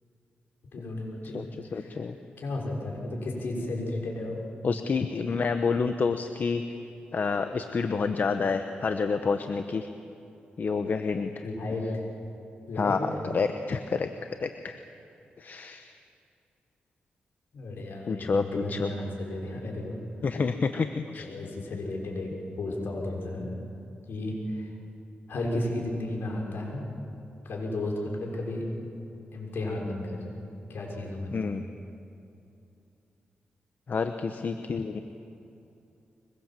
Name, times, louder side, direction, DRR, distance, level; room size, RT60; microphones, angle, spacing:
voice 1, 0.7-2.0 2.4-4.4 11.4-12.0 12.7-13.2 17.5-20.0 21.2-22.3 22.6-23.5 24.1-24.7 25.3-26.9 27.4-28.6 29.3-30.2 30.7-31.3, left 2 dB, 75° left, 0 dB, 6.1 m, -33 dB
voice 2, 1.3-2.2 4.6-6.6 7.1-9.9 10.6-11.3 12.8-14.1 14.4-14.8 15.4-15.9 18.1-18.9 20.2-21.3 31.3-31.6 33.9-35.0, left 5 dB, 55° left, 8 dB, 1.1 m, -28 dB
23.5 x 22.0 x 7.7 m, 2.7 s
cardioid pair, 70°, 4 cm